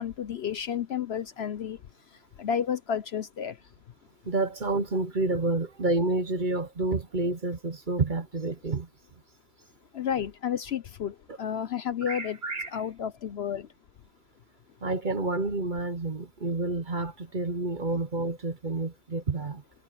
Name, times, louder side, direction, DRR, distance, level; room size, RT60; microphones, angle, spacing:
voice 1, 0.0-1.8 2.4-3.6 9.9-12.4 12.7-13.7, left 8 dB, 60° left, 0.9 m, -31 dB
voice 2, 4.3-8.9 12.1-12.7 14.8-19.6, right 3 dB, 40° right, 1.0 m, -29 dB
omnidirectional pair, 1.4 m